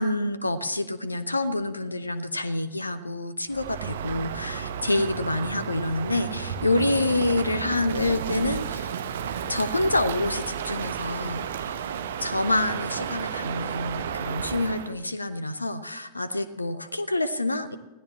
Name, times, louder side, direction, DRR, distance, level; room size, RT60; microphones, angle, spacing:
voice 1, 0.0-8.9 9.5-11.8 12.2-17.8, left 2 dB, 80° left, 14 dB, 0.8 m, -27 dB
Crow, 3.5-14.9, right 8 dB, 60° right, 0.9 m, -32 dB
20.5 x 15.5 x 2.9 m, 1.1 s
figure-of-eight pair, 90°, 0 cm